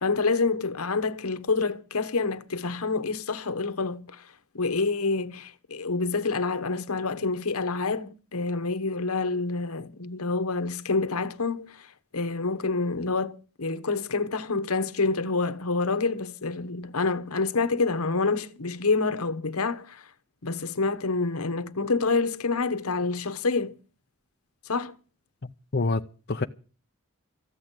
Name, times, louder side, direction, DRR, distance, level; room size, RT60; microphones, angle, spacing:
voice 1, 0.0-4.2 4.5-11.8 12.1-20.0 20.4-23.8 24.7-24.9, left 3 dB, 85° left, 1.1 m, -27 dB
voice 2, 25.4-26.4, left 3 dB, 50° left, 0.6 m, -28 dB
14.5 x 8.4 x 8.9 m
head